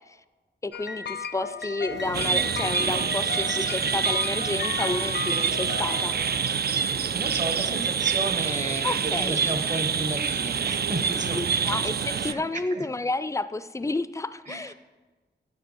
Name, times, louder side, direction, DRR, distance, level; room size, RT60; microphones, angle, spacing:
voice 1, 0.6-6.1 8.8-9.4 11.3-14.7, left 2 dB, 15° left, 14 dB, 0.4 m, -31 dB
sound 1, 0.7-6.7, left 5 dB, 70° left, 0.6 m, -35 dB
sound 2, 1.9-3.4, right 3 dB, 75° right, 1.0 m, -37 dB
sound 3, 2.1-12.3, right 7 dB, 60° right, 0.4 m, -26 dB
voice 2, 3.0-4.2 6.5-12.4 12.7-12.9 14.5-14.7, right 2 dB, 40° right, 7 dB, 1.1 m, -34 dB
8.9 x 6.7 x 6.9 m, 1.3 s
wide cardioid pair, 100°, 19 cm